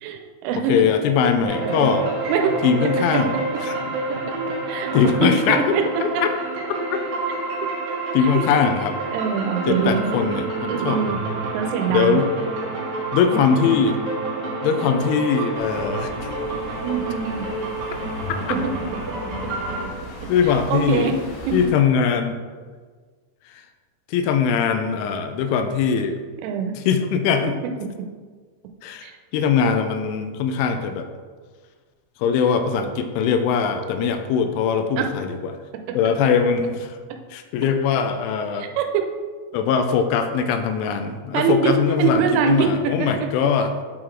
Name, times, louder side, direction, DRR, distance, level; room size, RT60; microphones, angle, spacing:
voice 1, 0.0-0.8 1.6-1.9 2.3-2.6 4.7-5.8 8.4-8.5 9.1-10.3 10.7-11.2 11.5-12.2 16.8-17.5 18.5-18.6 20.7-21.1 26.4-26.7 29.0-29.2 35.0-35.1 38.6-39.0 41.3-43.1, right 7 dB, 85° right, 5 dB, 3.2 m, -23 dB
voice 2, 0.5-2.1 2.6-4.0 4.9-5.7 6.2-6.3 8.1-9.0 9.7-11.0 11.9-12.3 13.1-14.0 14.6-16.4 18.3-18.4 20.3-21.1 21.5-22.4 23.4-23.7 24.1-26.2 26.8-27.6 28.8-31.1 32.2-35.6 35.9-37.0 37.3-38.7 39.5-43.7, left 6 dB, 85° left, 7 dB, 3.0 m, -21 dB
sound 1, 1.4-19.8, right 2 dB, 60° right, 2.1 m, -28 dB
sound 2, 15.5-21.7, equal, 60° left, 2.4 m, -37 dB
8.4 x 3.8 x 4.5 m, 1.5 s
omnidirectional pair, 5.5 m